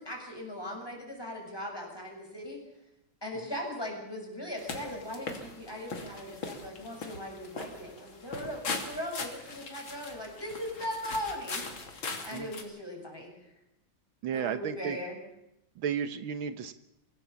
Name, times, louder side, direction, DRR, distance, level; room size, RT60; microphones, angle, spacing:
voice 1, 0.0-2.6 3.2-13.5 14.3-15.2, left 1 dB, 10° left, 1 dB, 6.8 m, -39 dB
sound 1, 4.6-12.6, left 4 dB, 75° left, 3.5 m, -40 dB
voice 2, 14.2-15.0 15.8-16.7, right 8 dB, 80° right, 11 dB, 1.8 m, -33 dB
25.0 x 18.0 x 7.1 m, 0.85 s
omnidirectional pair, 2.2 m